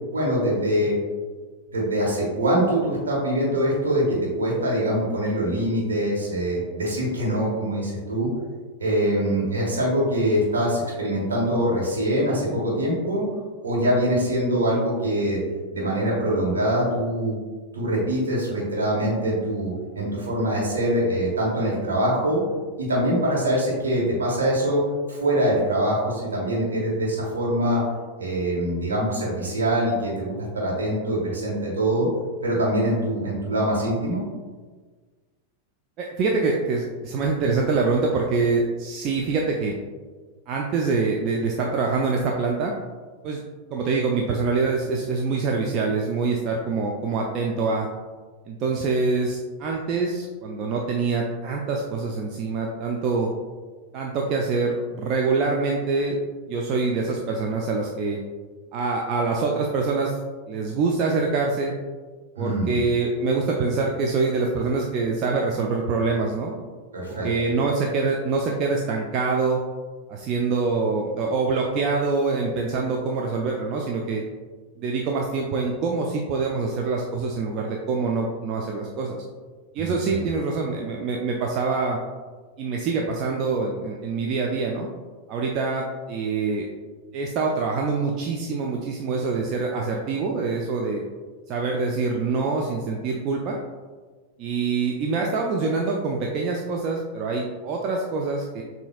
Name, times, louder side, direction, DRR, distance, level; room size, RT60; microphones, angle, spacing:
voice 1, 0.1-0.9 1.7-8.3 8.8-13.2 13.6-15.4 15.7-17.4 17.7-22.4 22.8-24.8 25.1-27.8 28.2-32.1 32.4-34.2 62.3-62.8 66.9-67.3 79.8-80.3, right 1 dB, 70° right, -4 dB, 1.4 m, -24 dB
voice 2, 36.0-39.7 40.5-42.7 43.2-43.4 43.7-47.9 48.5-53.3 53.9-56.2 56.5-58.2 58.7-60.1 60.5-61.7 62.4-66.5 67.2-69.6 70.1-74.2 74.8-79.2 79.7-82.0 82.6-84.9 85.3-86.7 87.1-91.0 91.5-93.6 94.4-98.6, right 4 dB, 40° right, 0 dB, 0.4 m, -25 dB
6.9 x 2.7 x 2.4 m, 1.4 s
figure-of-eight pair, 90°, 0 cm